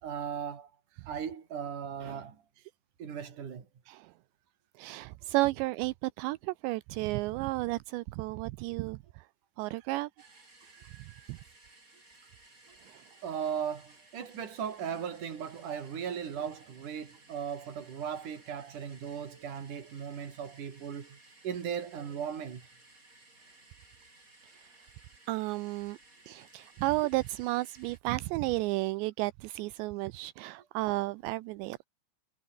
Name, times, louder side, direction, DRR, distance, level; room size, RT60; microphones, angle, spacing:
voice 1, 0.0-0.7 1.1-2.4 3.0-3.7 12.7-12.8 13.2-21.2 21.4-22.6, right 8 dB, 45° right, 4.3 m, -37 dB
voice 2, 4.8-9.3 9.6-10.3 10.6-11.4 12.8-13.0 24.6-24.7 25.3-26.0 26.3-31.9, right 20 dB, 80° right, 2.8 m, -33 dB
sound 1, 10.2-28.0, right 2 dB, 15° right, 5.9 m, -59 dB
omnidirectional pair, 5.3 m